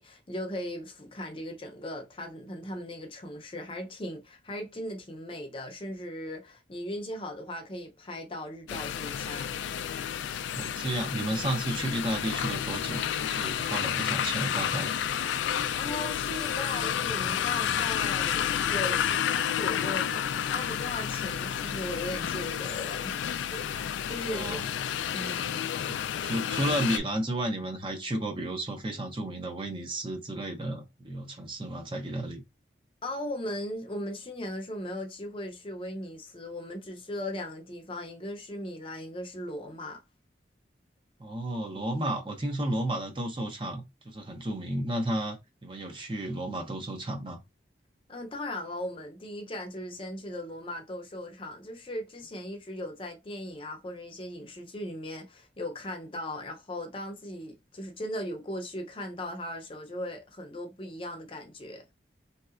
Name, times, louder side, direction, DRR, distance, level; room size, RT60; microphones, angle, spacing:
voice 1, 0.0-9.6 15.8-23.1 23.5-24.6 25.1-25.7 33.0-40.0 48.1-61.8, left 1 dB, 30° left, 0.6 m, -38 dB
sound 1, 8.7-27.0, left 9 dB, 80° left, 0.3 m, -30 dB
voice 2, 10.5-14.9 24.3-24.6 25.9-32.4 41.2-45.4 45.6-47.4, right 1 dB, 25° right, 0.6 m, -32 dB
3.1 x 2.8 x 2.4 m
head